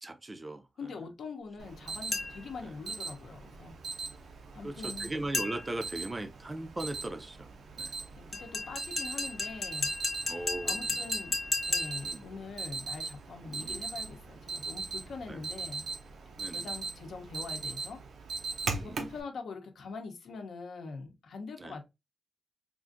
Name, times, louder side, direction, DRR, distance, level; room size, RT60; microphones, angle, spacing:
voice 1, 0.0-0.6 2.6-2.8 4.6-7.5 7.8-7.9 10.3-11.0 12.0-12.2 13.6-13.8 15.3-15.4 16.4-16.7 18.6-19.1 21.6-21.8, right 2 dB, 20° right, 0.4 m, -39 dB
voice 2, 0.8-3.7 4.5-5.1 8.1-9.9 10.6-11.4 11.7-15.8 16.5-18.0 18.7-21.8, left 4 dB, 75° left, 0.7 m, -43 dB
Alarm, 1.6-19.2, right 4 dB, 80° right, 0.6 m, -40 dB
sound 1, 2.1-2.6 5.3-5.9 8.3-12.2, left 3 dB, 25° left, 0.6 m, -34 dB
3.6 x 2.5 x 2.5 m
wide cardioid pair, 175°, 0 cm